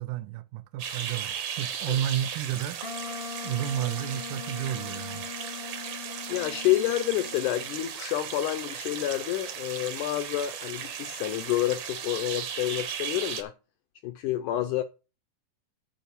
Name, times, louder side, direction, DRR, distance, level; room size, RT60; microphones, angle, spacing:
voice 1, 0.0-2.8 3.4-5.3, right 11 dB, 80° right, 1.9 m, -31 dB
sound 1, 0.8-13.4, right 8 dB, 60° right, 2.0 m, -36 dB
Wind instrument woodwind instrument, 2.8-7.8, left 7 dB, 50° left, 0.6 m, -41 dB
voice 2, 6.3-13.5 14.0-14.8, left 14 dB, 85° left, 1.7 m, -29 dB
9.2 x 4.5 x 6.7 m
omnidirectional pair, 4.2 m